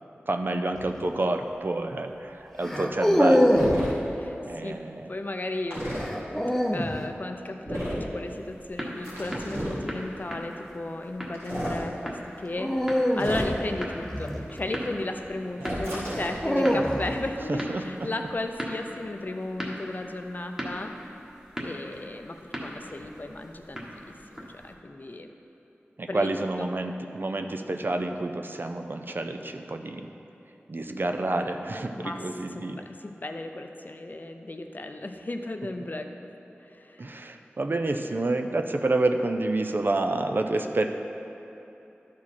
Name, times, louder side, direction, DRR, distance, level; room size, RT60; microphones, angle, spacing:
voice 1, 0.3-3.9 4.4-5.1 15.6-16.2 16.6-16.8 17.5-17.8 26.0-30.1 30.7-32.8 37.0-40.8, right 2 dB, 50° right, 5 dB, 0.5 m, -29 dB
sound 1, 0.8-1.1 2.6-3.9 6.0-7.0 9.4-9.8 12.6-14.9 16.0-17.3, equal, 5° left, 0.8 m, -25 dB
sound 2, 3.5-3.9 5.7-6.0 7.6-8.1 9.0-9.8 11.3-11.8 13.2-13.7 15.6-16.4, equal, 85° right, 2.0 m, -32 dB
voice 2, 5.1-6.0 6.7-12.7 13.2-20.9 21.6-25.3 26.1-26.3 26.6-26.7 32.0-32.3 32.5-36.3 36.7-37.1, left 2 dB, 45° left, 5 dB, 0.5 m, -35 dB
sound 3, 8.2-24.7, equal, 15° right, 1.5 m, -40 dB
12.0 x 4.8 x 4.3 m, 3.0 s
wide cardioid pair, 45°, 4 cm